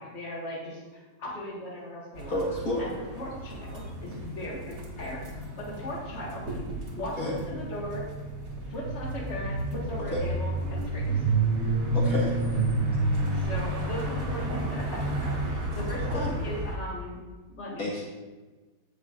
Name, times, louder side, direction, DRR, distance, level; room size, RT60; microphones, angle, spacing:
voice 1, 0.0-2.3 2.8-5.3 5.7-6.6 6.9-7.2 7.5-8.0 8.7-11.3 13.3-17.2 17.5-17.9, equal, 40° left, -4 dB, 1.9 m, -38 dB
sound 1, 2.1-16.7, right 2 dB, 55° right, 2.0 m, -30 dB
voice 2, 2.3-2.9 7.2-7.4 10.1-10.2 11.9-12.4 16.1-16.3 17.8-18.0, left 1 dB, 55° left, -5 dB, 1.9 m, -30 dB
15.5 x 5.5 x 2.5 m, 1.3 s
omnidirectional pair, 1.8 m